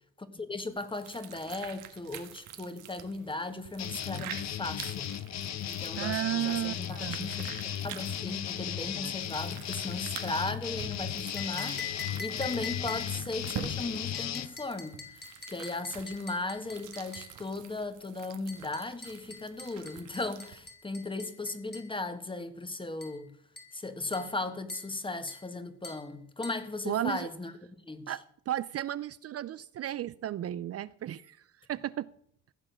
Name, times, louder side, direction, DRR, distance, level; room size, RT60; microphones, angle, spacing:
voice 1, 0.2-5.1 5.7-23.3 23.7-27.5 27.9-28.2, left 2 dB, 15° left, 1.5 m, -37 dB
sound 1, 0.7-20.7, right 8 dB, 85° right, 1.5 m, -47 dB
sound 2, 3.8-14.5, left 10 dB, 60° left, 0.9 m, -36 dB
voice 2, 6.0-7.3 26.9-27.3 28.1-31.4 31.7-32.1, right 12 dB, 55° right, 0.5 m, -34 dB
sound 3, 11.4-13.3 14.1-17.4 18.5-21.9 23.0-23.2 23.6-23.8 24.1-24.4 24.7-25.0 25.3-25.5 25.8-26.1 26.4-26.7, left 5 dB, 35° left, 2.9 m, -44 dB
15.0 x 7.5 x 6.3 m
cardioid pair, 90°, 30 cm